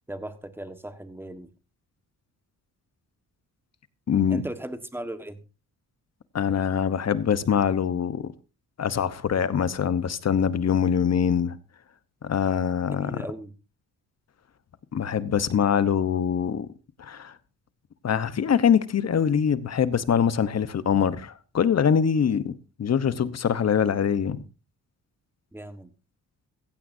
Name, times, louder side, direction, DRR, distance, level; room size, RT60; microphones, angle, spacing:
voice 1, 0.1-1.5 4.3-5.4 12.8-13.5 25.5-25.9, right 1 dB, 5° right, 1.5 m, -37 dB
voice 2, 4.1-4.4 6.3-8.3 8.8-11.6 12.2-13.2 14.9-16.7 17.0-17.3 18.0-24.4, left 7 dB, 45° left, 1.1 m, -24 dB
16.0 x 15.0 x 2.7 m
cardioid pair, 115°, 37 cm